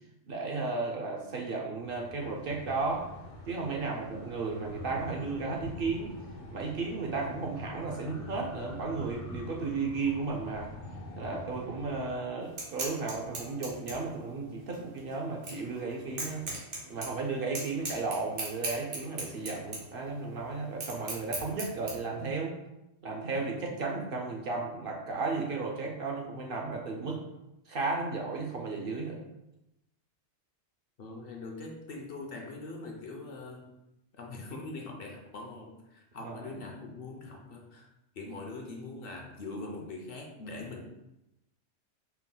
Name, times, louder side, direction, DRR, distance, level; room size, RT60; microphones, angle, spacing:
voice 1, 0.3-3.0 3.5-6.1 6.5-10.7 11.1-16.5 16.9-22.6 23.0-27.2 27.7-29.2 36.2-36.6, right 3 dB, 60° right, 1 dB, 0.7 m, -34 dB
sound 1, 1.8-12.1, left 1 dB, 85° left, 1.1 m, -45 dB
sound 2, 12.4-21.9, right 2 dB, 85° right, 1.3 m, -40 dB
voice 2, 31.0-33.7 34.1-37.9 38.2-40.8, left 2 dB, 60° left, 1 dB, 0.7 m, -42 dB
4.4 x 2.1 x 3.8 m, 0.91 s
omnidirectional pair, 1.2 m